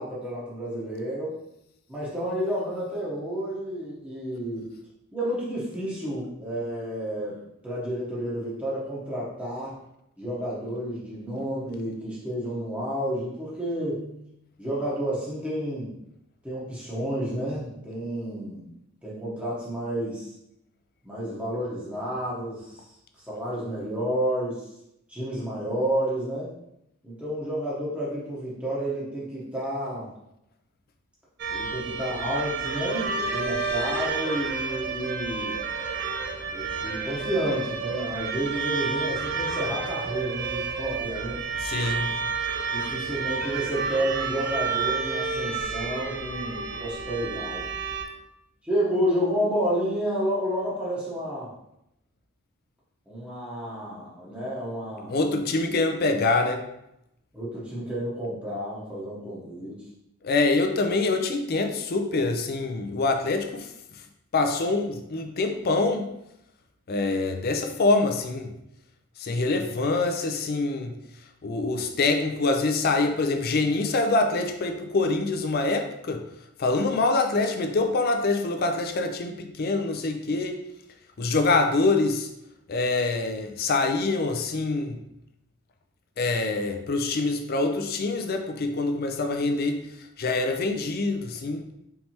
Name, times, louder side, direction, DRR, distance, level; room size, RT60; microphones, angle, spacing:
voice 1, 0.0-1.3 1.9-4.7 5.1-7.4 7.6-9.7 10.2-14.3 14.6-15.9 16.4-18.7 19.0-20.3 21.0-22.8 23.3-24.7 25.1-26.5 27.0-30.1 31.5-35.6 36.5-41.4 42.7-47.7 48.6-51.5 53.1-55.2 57.3-59.8, equal, 5° right, -8 dB, 0.9 m, -30 dB
sound 1, 31.4-48.0, right 5 dB, 50° right, 0.4 m, -30 dB
voice 2, 41.6-42.1 55.1-56.6 60.2-63.7 64.3-66.1 66.9-68.5 69.2-71.0 71.4-76.2 76.6-80.6 81.2-82.3 82.7-85.0 86.2-89.8 90.2-91.7, left 3 dB, 45° left, 6 dB, 0.4 m, -25 dB
4.5 x 3.3 x 2.8 m, 0.82 s
head